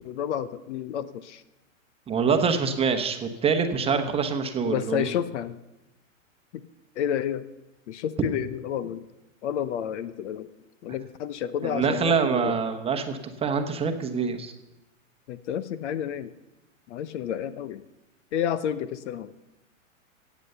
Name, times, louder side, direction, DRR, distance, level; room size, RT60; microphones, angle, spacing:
voice 1, 0.0-1.4 4.7-5.6 6.5-6.6 7.0-7.4 7.9-9.0 9.4-10.5 10.8-12.5 15.3-16.3 16.9-17.8 18.3-19.3, left 9 dB, 55° left, 15 dB, 0.8 m, -30 dB
voice 2, 2.1-5.1 8.2-8.3 11.6-14.5, right 5 dB, 15° right, 6 dB, 1.0 m, -25 dB
16.5 x 8.3 x 6.7 m, 0.97 s
hypercardioid pair, 135°, 40 cm